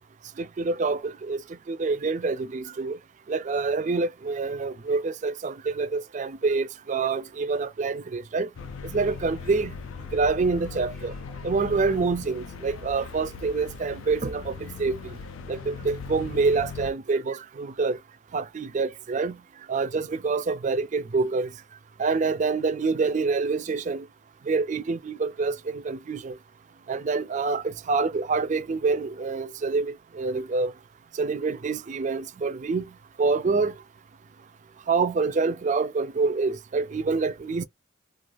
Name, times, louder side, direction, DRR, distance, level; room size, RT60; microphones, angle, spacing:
voice 1, 0.4-1.4 1.7-3.0 3.3-8.5 8.8-9.7 10.1-11.1 11.4-15.0 15.5-18.0 18.3-19.4 19.7-21.5 22.0-24.1 24.5-26.4 26.9-30.7 31.1-32.8 33.2-33.7 34.9-37.6, right 4 dB, 35° right, 0.3 m, -26 dB
sound 1, 8.5-16.9, left 5 dB, 70° left, 0.3 m, -39 dB
2.4 x 2.3 x 3.1 m
head